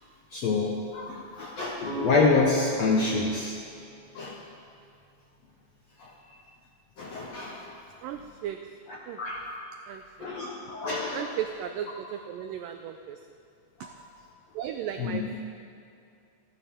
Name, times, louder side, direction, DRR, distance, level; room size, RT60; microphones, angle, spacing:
voice 1, 0.3-3.6 4.1-4.4 6.0-6.1 7.0-7.7 8.9-9.5 10.2-11.2 13.8-13.9 15.0-15.2, left 3 dB, 70° left, -2 dB, 1.6 m, -27 dB
sound 1, 1.8-5.6, right 1 dB, 50° left, 4.9 m, -39 dB
voice 2, 8.0-8.8 9.1-9.2 9.9-10.3 11.1-13.2 14.5-15.4, right 9 dB, 90° right, 7 dB, 1.9 m, -36 dB
26.5 x 12.0 x 3.6 m, 2.5 s
omnidirectional pair, 4.6 m